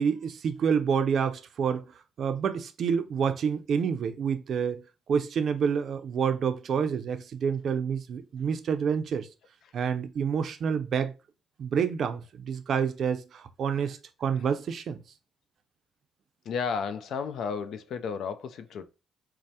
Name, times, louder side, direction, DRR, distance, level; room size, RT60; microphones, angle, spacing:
voice 1, 0.0-1.9 2.2-4.8 5.1-9.3 9.7-11.1 11.6-15.0, right 7 dB, 60° right, 0.4 m, -28 dB
voice 2, 16.5-18.8, left 6 dB, 70° left, 0.4 m, -33 dB
4.6 x 2.0 x 2.7 m
cardioid pair, 90°, 0 cm